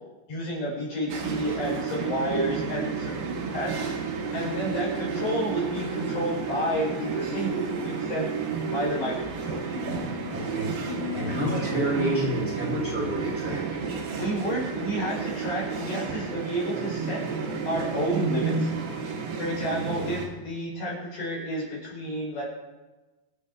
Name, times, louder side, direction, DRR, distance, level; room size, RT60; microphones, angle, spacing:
voice 1, 0.3-3.8 4.3-8.3 8.7-9.2 9.4-9.6 14.2-17.2 17.6-18.7 19.4-22.4, equal, 50° left, -6 dB, 7.4 m, -30 dB
sound 1, 1.1-20.3, right 5 dB, 60° right, 3.7 m, -31 dB
sound 2, 7.2-8.5 9.7-11.9, left 2 dB, 65° left, 8.4 m, -37 dB
voice 2, 10.3-10.7 11.1-13.8, equal, 5° right, -7 dB, 1.2 m, -29 dB
27.0 x 10.0 x 3.6 m, 1.1 s
omnidirectional pair, 5.9 m